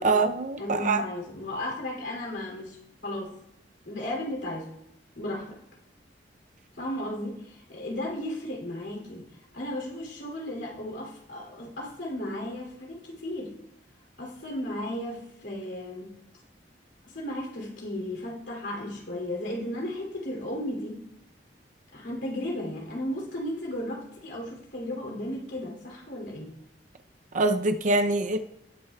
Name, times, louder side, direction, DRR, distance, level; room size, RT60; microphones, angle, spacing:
voice 1, 0.0-1.0 27.3-28.4, right 3 dB, 45° right, 8 dB, 0.5 m, -24 dB
voice 2, 0.6-3.3 3.8-4.7 5.2-5.6 6.8-9.2 9.5-13.5 14.2-16.1 17.0-21.0 21.9-26.5, left 1 dB, 75° left, 0 dB, 2.8 m, -35 dB
18.0 x 6.5 x 2.3 m, 0.82 s
head